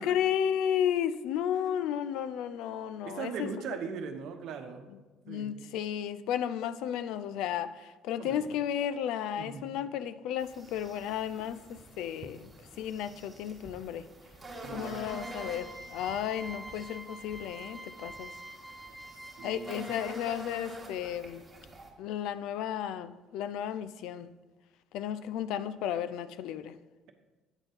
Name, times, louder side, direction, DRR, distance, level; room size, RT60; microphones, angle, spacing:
voice 1, 0.0-3.5 5.3-12.5 12.8-14.1 14.7-18.3 19.4-21.4 22.0-24.3 24.9-26.8, left 9 dB, 75° left, 0.4 m, -33 dB
voice 2, 1.5-1.9 3.0-4.9 5.3-5.5 8.2-8.5 9.4-9.6 14.6-15.0 19.4-19.9, right 5 dB, 65° right, 0.9 m, -40 dB
sound 1, 10.4-21.9, right 1 dB, 20° right, 1.5 m, -47 dB
sound 2, 15.0-20.3, right 1 dB, 25° left, 1.1 m, -46 dB
8.9 x 4.4 x 5.3 m
cardioid pair, 110°, 0 cm